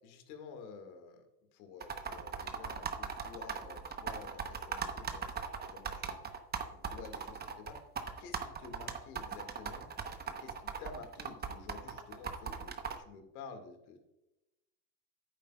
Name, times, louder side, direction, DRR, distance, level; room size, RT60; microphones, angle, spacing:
voice 1, 0.0-1.3 1.5-5.4 5.7-6.4 6.6-7.8 8.2-9.9 10.2-14.0, left 5 dB, 70° left, 6 dB, 2.0 m, -51 dB
sound 1, 1.8-13.0, right 6 dB, 20° right, 0.9 m, -39 dB
10.0 x 9.0 x 2.3 m, 0.95 s
supercardioid pair, 115°, 45 cm